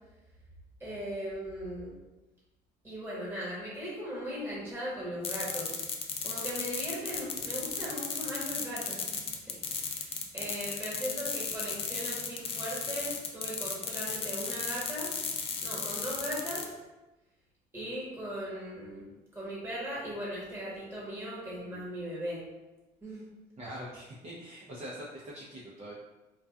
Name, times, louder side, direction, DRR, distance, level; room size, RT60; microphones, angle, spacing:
voice 1, 0.8-1.9 2.8-5.8 6.2-9.6 9.9-15.1 15.6-16.7 17.7-19.1 19.3-22.4 23.0-23.2, equal, 15° right, -6 dB, 1.2 m, -38 dB
sound 1, 5.2-16.7, left 5 dB, 35° left, 0.3 m, -35 dB
voice 2, 23.6-25.9, equal, 40° right, -7 dB, 0.5 m, -43 dB
2.6 x 2.2 x 2.2 m, 1.1 s
cardioid pair, 110°, 17 cm